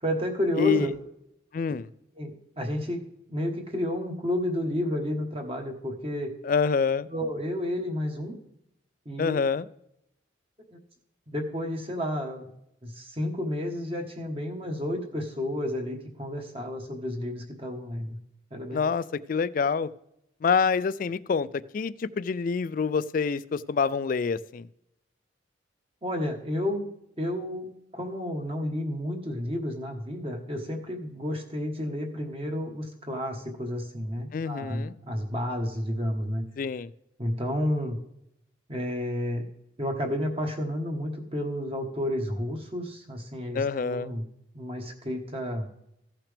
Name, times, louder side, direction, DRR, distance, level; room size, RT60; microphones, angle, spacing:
voice 1, 0.0-0.9 2.2-3.0 3.3-6.3 7.1-8.3 9.0-9.4 11.3-12.5 12.8-18.2 18.5-18.9 26.0-26.9 27.2-36.4 37.2-38.0 38.7-39.4 39.8-44.3 44.5-45.7, left 1 dB, 30° right, 3 dB, 1.3 m, -31 dB
voice 2, 0.6-0.9 1.5-1.9 6.4-7.1 9.2-9.7 18.7-19.9 20.4-21.5 21.7-24.7 34.3-34.9 36.6-36.9 43.5-44.1, left 5 dB, 45° left, 17 dB, 0.3 m, -26 dB
15.0 x 5.8 x 3.4 m, 0.80 s
head